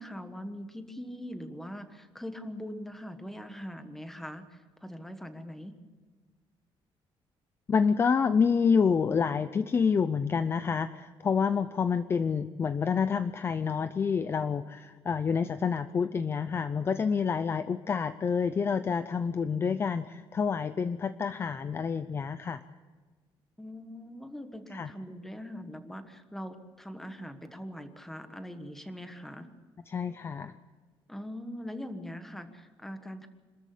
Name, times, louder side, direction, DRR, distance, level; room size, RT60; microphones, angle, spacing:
voice 1, 0.0-5.8 23.6-29.5 31.1-33.3, equal, 5° left, 8 dB, 1.4 m, -42 dB
voice 2, 7.7-22.6 24.7-24.9 29.9-30.5, left 6 dB, 25° left, 12 dB, 0.5 m, -28 dB
26.5 x 13.5 x 8.3 m, 1.4 s
cardioid pair, 175°, 9 cm